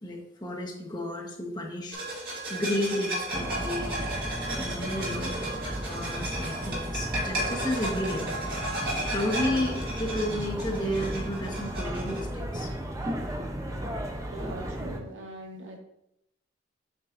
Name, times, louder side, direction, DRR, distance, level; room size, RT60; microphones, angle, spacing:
voice 1, 0.0-2.0 2.5-4.0 4.5-5.4 5.6-8.2 9.1-12.7, left 1 dB, 20° left, -3 dB, 1.1 m, -32 dB
sound 1, 1.9-12.2, right 1 dB, 50° right, 2.0 m, -34 dB
sound 2, 3.3-15.0, right 1 dB, 15° right, 0.6 m, -34 dB
voice 2, 4.8-5.4 14.3-15.8, equal, 75° right, 1 dB, 1.2 m, -42 dB
7.1 x 5.8 x 2.6 m, 0.79 s
head